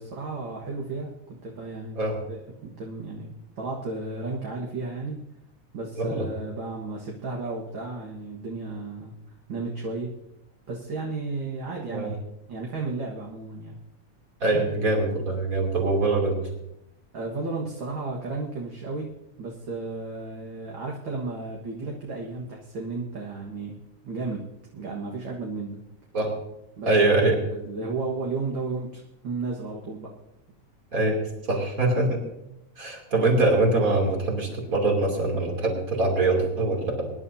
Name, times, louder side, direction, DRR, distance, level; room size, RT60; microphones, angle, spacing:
voice 1, 0.0-2.0 2.3-5.2 5.7-9.2 9.5-10.1 10.7-12.2 12.5-13.8 17.1-19.1 19.4-23.7 24.0-24.4 24.7-25.8 26.8-30.1, right 3 dB, 45° right, -2 dB, 2.0 m, -33 dB
voice 2, 14.4-16.4 26.1-26.3 26.9-27.4 30.9-31.2 31.5-32.2 32.8-37.1, right 2 dB, 30° right, 0 dB, 3.1 m, -23 dB
23.5 x 11.0 x 2.8 m, 0.86 s
omnidirectional pair, 3.5 m